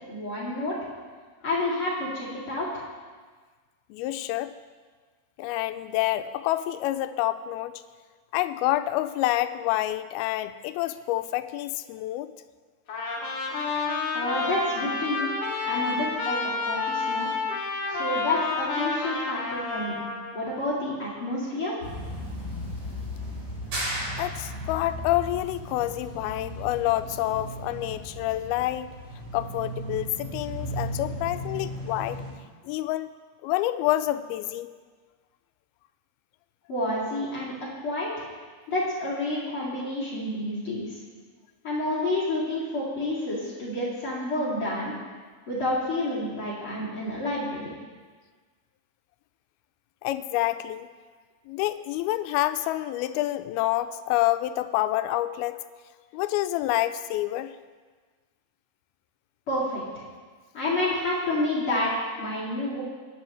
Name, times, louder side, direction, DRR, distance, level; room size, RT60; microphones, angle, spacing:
voice 1, 0.1-0.8 1.4-2.7 14.1-15.3 15.6-17.3 17.9-19.9 20.3-21.7 36.7-37.5 37.8-38.3 38.7-40.9 41.6-44.9 45.5-47.7 59.5-60.0 60.5-61.9 62.2-62.8, left 1 dB, 40° left, -8 dB, 3.0 m, -29 dB
voice 2, 3.9-4.5 5.4-7.7 8.3-12.3 24.2-28.9 29.3-32.2 32.7-33.1 33.4-34.7 50.0-50.9 51.5-55.6 56.1-57.5, left 15 dB, 85° left, 11 dB, 2.4 m, -28 dB
Trumpet, 12.9-20.3, left 3 dB, 60° left, 2.8 m, -29 dB
sound 1, 21.8-32.3, equal, 40° right, 5.3 m, -36 dB
sound 2, 23.7-24.8, right 1 dB, 75° right, 6.2 m, -32 dB
20.0 x 9.5 x 3.1 m, 1.5 s
omnidirectional pair, 4.4 m